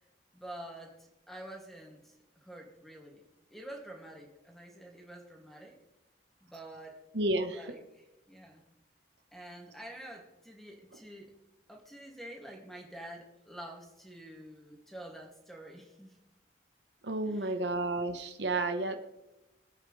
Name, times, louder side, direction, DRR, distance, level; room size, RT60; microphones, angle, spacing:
voice 1, 0.3-3.2 3.5-5.8 6.4-7.1 7.5-8.6 9.3-11.3 11.7-16.2 17.2-17.7 18.8-19.0, right 1 dB, ahead, 0 dB, 2.3 m, -48 dB
voice 2, 7.1-7.6 17.0-19.0, right 2 dB, 75° right, 6 dB, 1.2 m, -31 dB
25.0 x 8.8 x 3.3 m, 0.94 s
head